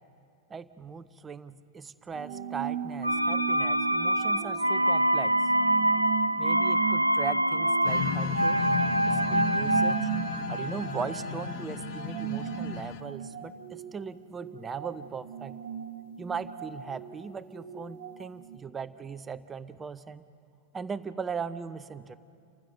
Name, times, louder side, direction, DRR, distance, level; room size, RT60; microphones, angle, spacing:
voice 1, 0.5-5.4 6.4-8.6 9.1-10.1 10.5-15.5 16.2-20.2 20.7-22.2, right 6 dB, 20° right, 13 dB, 0.6 m, -39 dB
sound 1, 2.1-18.6, right 10 dB, 50° right, 1.2 m, -38 dB
sound 2, 3.0-12.8 13.0-13.1, right 1 dB, 85° right, 0.4 m, -26 dB
sound 3, 7.8-13.0, left 8 dB, 45° left, 1.0 m, -35 dB
29.5 x 15.0 x 6.6 m, 2.5 s
figure-of-eight pair, 90°, 0 cm